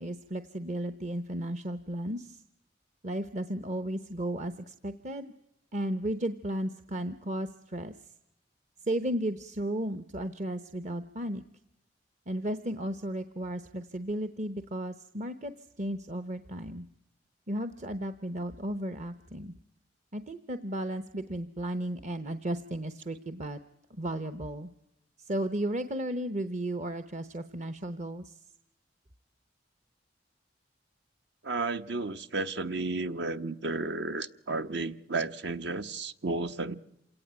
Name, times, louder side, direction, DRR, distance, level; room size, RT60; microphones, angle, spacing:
voice 1, 0.0-2.4 3.0-5.3 5.7-8.0 8.9-11.4 12.3-16.9 17.5-19.5 20.1-23.6 24.0-24.7 25.2-28.3, right 1 dB, 40° right, 0.9 m, -34 dB
voice 2, 31.4-36.8, right 3 dB, 65° right, 1.1 m, -33 dB
27.5 x 18.0 x 8.9 m
head